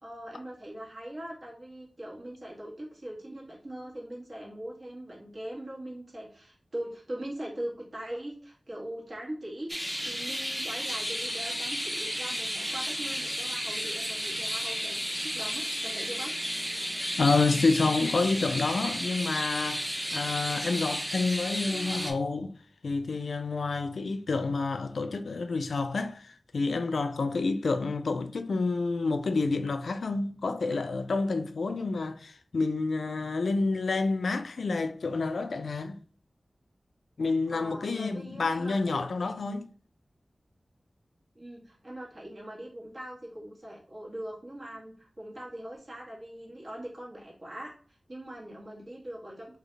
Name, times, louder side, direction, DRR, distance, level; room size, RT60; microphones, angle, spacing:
voice 1, 0.0-16.3 37.5-39.0 41.3-47.7 48.1-49.6, right 1 dB, 55° right, 1.6 m, -41 dB
sound 1, 9.7-22.1, equal, 5° right, 0.7 m, -33 dB
voice 2, 17.2-22.5 22.8-36.0 37.2-39.7, left 3 dB, 90° left, 0.4 m, -29 dB
4.0 x 2.7 x 3.2 m
wide cardioid pair, 95°, 0 cm